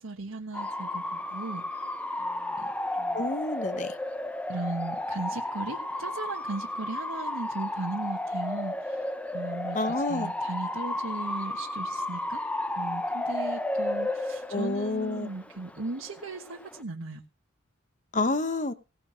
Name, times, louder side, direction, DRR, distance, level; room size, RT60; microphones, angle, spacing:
voice 1, 0.0-3.3 4.5-12.4 12.8-17.2, right 2 dB, 80° right, 1.3 m, -37 dB
Bark / Motor vehicle (road) / Siren, 0.5-16.8, left 1 dB, 5° left, 0.5 m, -33 dB
voice 2, 3.1-4.0 9.7-10.3 14.5-15.3 18.1-18.7, left 2 dB, 35° left, 0.9 m, -29 dB
17.0 x 6.0 x 6.3 m
head